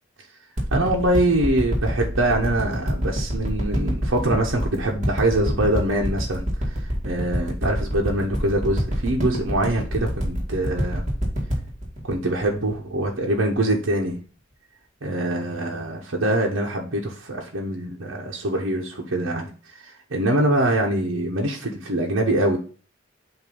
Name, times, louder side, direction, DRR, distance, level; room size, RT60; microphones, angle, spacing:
sound 1, 0.6-13.3 13.9-14.0, equal, 35° right, 2.0 m, -26 dB
voice 1, 0.7-6.5 7.0-11.0 12.1-14.2 15.0-19.5 20.1-22.6, right 1 dB, 85° right, -2 dB, 1.0 m, -23 dB
8.0 x 2.7 x 5.3 m, 0.39 s
head